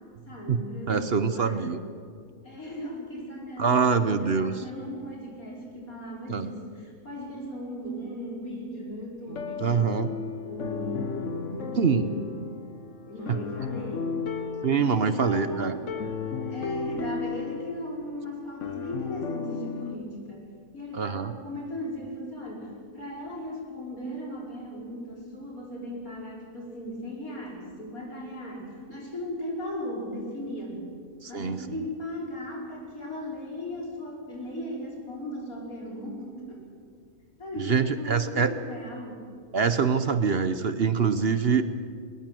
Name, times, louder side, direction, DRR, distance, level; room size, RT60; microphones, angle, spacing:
voice 1, 0.3-1.8 2.4-10.0 10.4-12.5 13.0-14.2 14.7-15.9 16.3-20.4 20.7-30.9 31.3-36.6 37.4-39.2, left 1 dB, 85° left, -3 dB, 5.8 m, -37 dB
voice 2, 0.9-1.8 3.6-4.5 6.3-6.5 9.6-10.1 11.7-12.1 14.6-15.7 20.9-21.3 31.2-31.6 37.5-38.5 39.5-41.6, right 6 dB, 50° right, 11 dB, 1.0 m, -24 dB
sound 1, 9.3-20.0, left 5 dB, 60° left, 1.3 m, -35 dB
21.0 x 20.0 x 7.7 m, 2.1 s
omnidirectional pair, 1.5 m